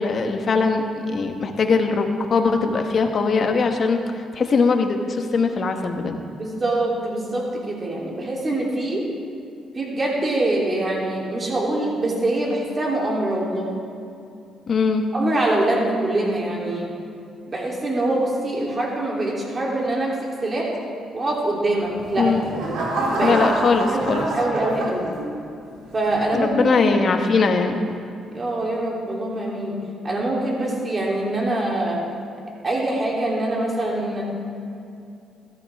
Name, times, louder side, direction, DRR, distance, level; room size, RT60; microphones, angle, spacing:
voice 1, 0.0-4.0 4.3-6.2 14.7-15.0 22.2-22.4 23.2-24.2 26.3-27.8, left 4 dB, 50° left, 5 dB, 1.3 m, -21 dB
voice 2, 6.4-9.0 9.7-13.7 15.1-16.9 17.5-20.7 21.1-22.3 23.1-23.6 23.9-25.1 25.9-27.0 28.3-29.8 30.0-32.0 32.6-34.2, right 1 dB, 35° right, -3 dB, 3.2 m, -24 dB
sound 1, 21.9-25.5 26.0-26.4, right 1 dB, 90° right, 3.0 m, -27 dB
15.0 x 13.5 x 3.6 m, 2.5 s
cardioid pair, 90°, 0 cm